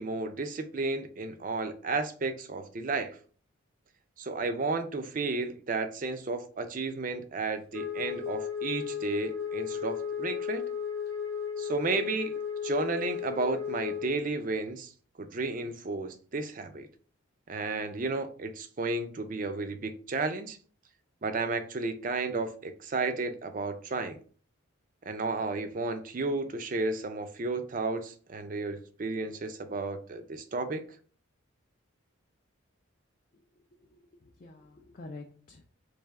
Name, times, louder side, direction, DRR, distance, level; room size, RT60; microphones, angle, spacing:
voice 1, 0.0-3.2 4.2-10.7 11.6-14.9 15.2-16.9 17.5-20.6 21.2-24.2 25.1-30.8, right 3 dB, 40° right, 0.4 m, -33 dB
Wind instrument woodwind instrument, 7.7-14.1, left 7 dB, 80° left, 0.8 m, -35 dB
voice 2, 33.8-35.7, left 2 dB, 40° left, 0.4 m, -48 dB
3.3 x 2.7 x 3.5 m
head